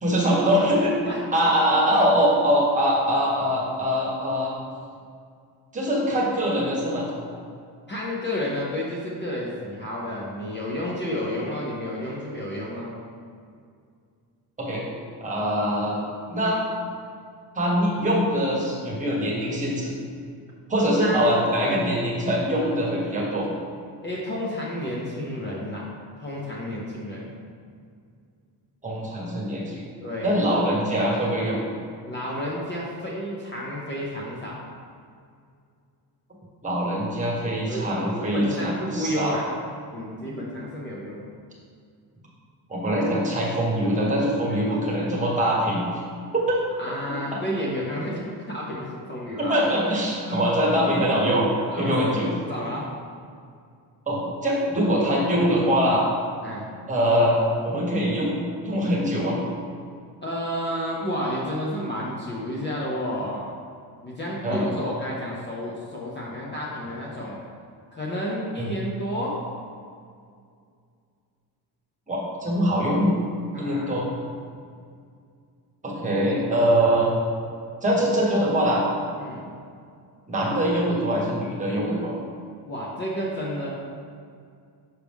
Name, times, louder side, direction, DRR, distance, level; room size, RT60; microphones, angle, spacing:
voice 1, 0.0-0.9 1.3-4.5 5.7-7.1 14.6-14.8 15.2-16.0 16.3-16.6 17.5-19.9 20.7-23.5 28.8-29.8 30.2-31.6 36.6-39.4 42.7-46.0 46.3-46.6 49.4-51.5 51.8-52.3 54.1-56.0 56.9-59.3 64.4-64.7 68.6-68.7 72.1-73.1 73.6-74.1 75.8-77.1 77.8-78.8 80.3-82.1, equal, 20° right, -5 dB, 1.3 m, -23 dB
voice 2, 7.9-12.9 21.0-21.8 24.0-25.9 26.2-27.3 30.0-30.3 32.1-34.6 37.7-39.5 39.9-41.2 44.7-44.8 46.8-49.6 50.3-50.4 51.7-52.0 52.5-52.9 56.4-56.7 60.2-63.5 64.0-67.4 67.9-69.4 73.5-74.0 79.2-79.5 82.6-83.7, equal, 25° left, -4 dB, 0.7 m, -31 dB
6.1 x 5.8 x 3.5 m, 2.3 s
cardioid pair, 165°, 41 cm